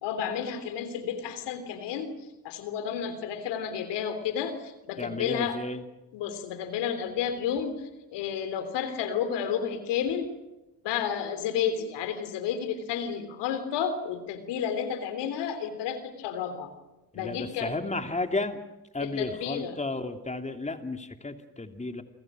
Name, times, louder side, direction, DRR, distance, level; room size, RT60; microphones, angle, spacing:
voice 1, 0.0-2.1 2.4-5.6 6.1-10.3 10.8-16.7 17.1-17.7 19.0-19.8, left 8 dB, 75° left, 10 dB, 3.3 m, -31 dB
voice 2, 5.0-5.8 17.1-18.6 18.9-22.0, left 3 dB, 15° left, 6 dB, 2.9 m, -33 dB
28.5 x 24.5 x 6.3 m, 1.0 s
hypercardioid pair, 50°, 42 cm